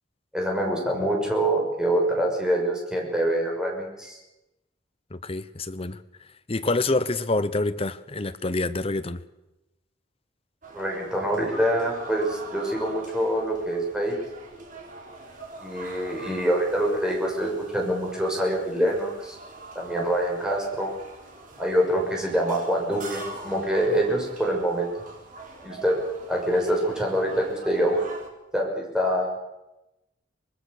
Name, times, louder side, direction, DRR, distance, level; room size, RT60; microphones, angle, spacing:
voice 1, 0.3-4.2 10.7-14.1 15.6-19.4 19.7-20.9 21.6-24.9 25.6-26.0 26.3-28.0 28.5-29.4, right 1 dB, 5° right, 5.9 m, -25 dB
voice 2, 5.1-6.0 6.5-9.2, left 2 dB, 30° left, 1.0 m, -27 dB
sound 1, 10.6-28.3, right 2 dB, 45° right, 4.3 m, -43 dB
24.5 x 20.5 x 6.7 m
head